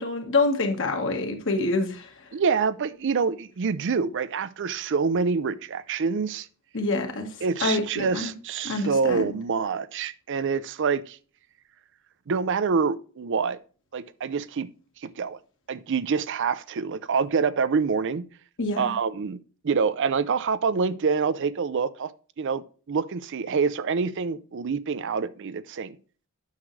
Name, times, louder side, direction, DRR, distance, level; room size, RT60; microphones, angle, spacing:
voice 1, 0.0-2.1 6.7-8.3 8.6-9.4 18.6-18.9, left 2 dB, 60° left, 1.6 m, -26 dB
voice 2, 2.3-6.5 7.4-11.2 12.3-13.6 13.9-14.7 15.0-15.4 15.7-18.2 18.8-19.4 19.6-22.1 22.4-26.0, right 5 dB, 55° right, 0.5 m, -26 dB
9.4 x 6.4 x 3.2 m
head